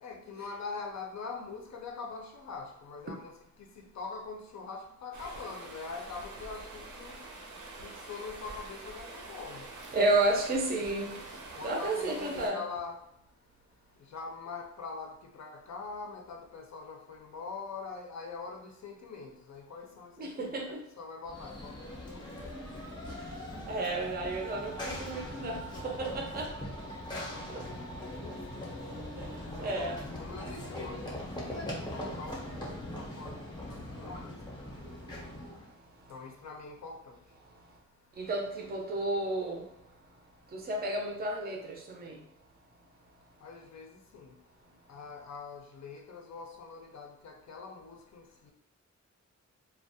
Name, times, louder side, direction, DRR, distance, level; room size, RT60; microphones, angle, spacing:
voice 1, 0.0-3.3 3.6-7.2 7.8-9.7 11.6-13.0 14.1-22.6 27.3-28.8 29.6-34.4 36.1-37.2 43.4-43.9 44.1-44.3 44.9-48.5, left 4 dB, 65° left, 1 dB, 0.5 m, -44 dB
Stream, 5.1-12.5, right 2 dB, 75° right, 0.6 m, -46 dB
voice 2, 9.9-12.6 20.2-20.8 23.1-23.4 23.7-26.6 27.5-27.6 28.9-30.0 35.0-36.1 37.4-37.8 38.1-39.9 40.5-42.2, right 2 dB, 35° right, 1 dB, 0.4 m, -33 dB
Run / Train, 21.2-35.7, left 1 dB, 15° left, 0.6 m, -41 dB
2.3 x 2.1 x 2.6 m, 0.75 s
wide cardioid pair, 125°, 30 cm